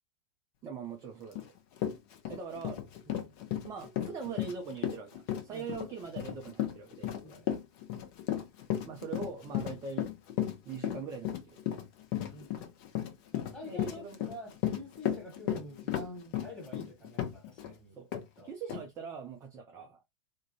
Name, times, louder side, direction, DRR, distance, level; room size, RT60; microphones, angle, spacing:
voice 1, 0.6-1.6 2.3-2.8 3.6-7.1 8.9-10.1 10.6-11.6 13.6-14.2 18.0-18.1 18.4-20.0, right 5 dB, 20° right, 0.4 m, -42 dB
Run, 1.3-1.5 1.8-17.7 18.1-18.2 18.7-18.8, left 11 dB, 40° left, 0.7 m, -34 dB
voice 2, 7.2-7.5 12.2-12.7 13.3-18.0 18.4-18.5, left 1 dB, 5° left, 1.4 m, -47 dB
2.4 x 2.1 x 2.7 m
figure-of-eight pair, 105°, 17 cm